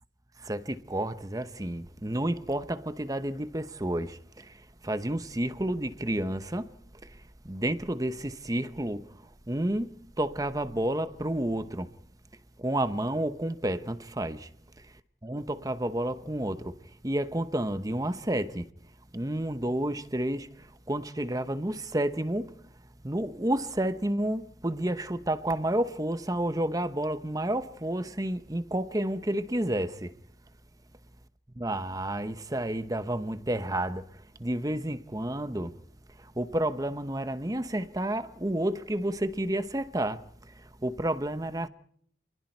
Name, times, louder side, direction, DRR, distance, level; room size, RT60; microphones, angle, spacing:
voice 1, 0.4-11.9 12.6-14.5 15.2-18.7 19.1-22.6 23.0-30.2 31.6-35.8 36.2-41.7, right 1 dB, 20° right, 1.0 m, -31 dB
28.5 x 21.5 x 4.6 m
head